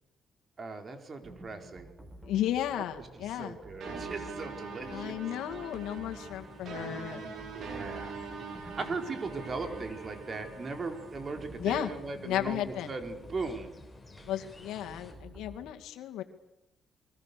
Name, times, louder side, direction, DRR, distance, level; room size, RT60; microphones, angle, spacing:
voice 1, 0.6-1.9 3.2-5.1 7.5-8.2 8.6-13.7, right 3 dB, 40° right, 6 dB, 4.3 m, -38 dB
sound 1, 1.2-15.7, right 1 dB, 20° right, 4.9 m, -50 dB
voice 2, 2.2-3.6 4.9-7.3 11.6-11.9 12.2-12.9 14.3-16.2, left 11 dB, 85° left, 6 dB, 2.2 m, -34 dB
sound 2, 3.8-11.4, right 5 dB, 70° right, 6.2 m, -43 dB
sound 3, 4.3-15.1, left 3 dB, 15° left, 5.9 m, -55 dB
28.5 x 23.0 x 6.9 m, 0.92 s
cardioid pair, 90°, 0 cm